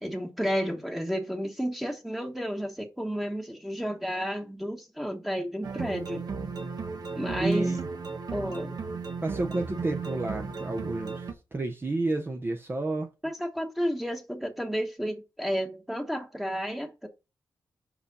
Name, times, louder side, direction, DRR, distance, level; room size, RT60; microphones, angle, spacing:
voice 1, 0.0-6.2 7.1-7.7 8.3-8.8 13.2-17.1, equal, 5° right, 1.3 m, -32 dB
sound 1, 5.6-11.3, right 4 dB, 60° right, 1.2 m, -35 dB
voice 2, 7.4-7.9 9.2-13.1, right 2 dB, 30° right, 0.8 m, -30 dB
5.0 x 5.0 x 5.4 m
cardioid pair, 90°, 8 cm